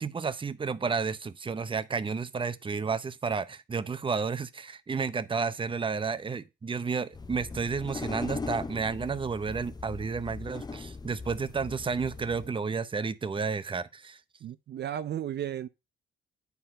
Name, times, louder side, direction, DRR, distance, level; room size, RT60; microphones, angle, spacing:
voice 1, 0.0-14.2, right 5 dB, 25° right, 0.8 m, -31 dB
sound 1, 7.1-12.5, left 4 dB, 20° left, 0.8 m, -39 dB
voice 2, 14.4-15.7, right 10 dB, 60° right, 0.6 m, -34 dB
9.6 x 4.6 x 5.7 m
cardioid pair, 90°, 20 cm